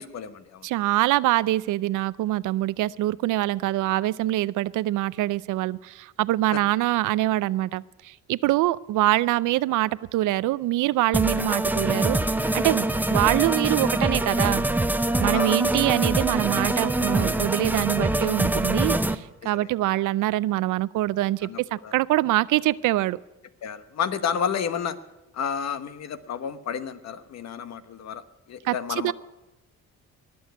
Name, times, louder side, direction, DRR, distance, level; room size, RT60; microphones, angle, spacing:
voice 1, 0.0-0.7 6.5-6.6 15.3-15.6 15.9-16.1 19.4-19.7 21.4-21.9 23.6-25.0 25.3-29.1, left 7 dB, 60° left, 12 dB, 1.1 m, -31 dB
voice 2, 0.6-14.6 15.2-23.2 28.6-28.7 29.0-29.1, right 16 dB, 80° right, 19 dB, 0.5 m, -24 dB
sound 1, 11.1-19.2, right 1 dB, 5° right, 0.7 m, -24 dB
20.5 x 7.1 x 9.3 m, 0.97 s
cardioid pair, 90°, 30 cm